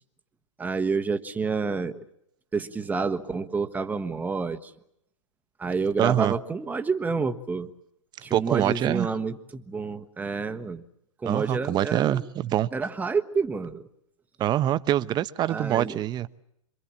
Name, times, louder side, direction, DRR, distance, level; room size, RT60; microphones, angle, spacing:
voice 1, 0.6-2.0 2.5-4.7 5.6-7.7 8.2-10.8 11.2-12.3 12.7-13.8 15.5-16.0, right 4 dB, 10° right, 8 dB, 1.4 m, -29 dB
voice 2, 6.0-6.3 8.3-9.1 11.2-12.7 14.4-16.3, right 12 dB, 25° right, 14 dB, 0.9 m, -24 dB
27.0 x 24.0 x 7.3 m, 0.78 s
hypercardioid pair, 120°, 17 cm